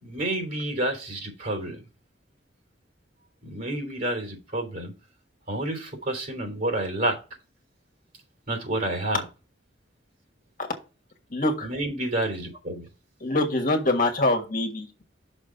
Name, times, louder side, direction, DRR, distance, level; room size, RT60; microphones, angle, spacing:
voice 1, 0.0-1.8 3.4-4.9 5.5-7.2 8.5-9.2 11.6-12.8, right 1 dB, 50° right, 3 dB, 3.2 m, -29 dB
voice 2, 11.3-11.7 13.2-14.9, left 2 dB, 50° left, 3 dB, 1.6 m, -24 dB
6.3 x 5.2 x 5.2 m, 0.30 s
head